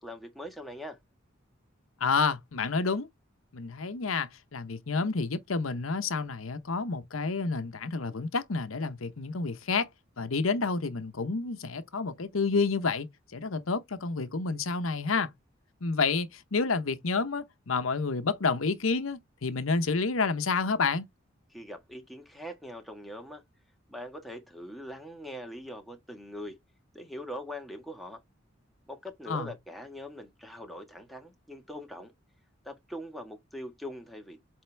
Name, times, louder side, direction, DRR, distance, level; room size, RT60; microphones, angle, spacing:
voice 1, 0.0-1.0 21.5-23.4 23.9-26.6 26.9-28.2 28.9-32.1 32.6-34.4, equal, ahead, 1.5 m, -42 dB
voice 2, 2.0-3.1 3.5-9.9 10.2-13.1 13.3-15.3 15.8-21.1 29.3-29.5, left 4 dB, 90° left, 0.9 m, -29 dB
7.8 x 3.6 x 3.4 m
head